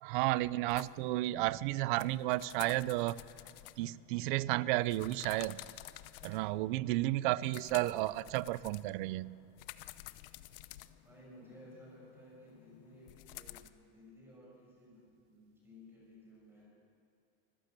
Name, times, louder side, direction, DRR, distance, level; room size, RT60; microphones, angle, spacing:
voice 1, 0.0-3.2 3.8-5.6 6.2-9.4, right 17 dB, 60° right, 20 dB, 0.5 m, -32 dB
sound 1, 0.7-6.7 7.2-13.7, left 16 dB, 70° left, 0.8 m, -52 dB
voice 2, 11.0-16.7, left 1 dB, 10° right, -4 dB, 6.0 m, -56 dB
25.5 x 15.5 x 6.7 m, 2.4 s
cardioid pair, 175°, 29 cm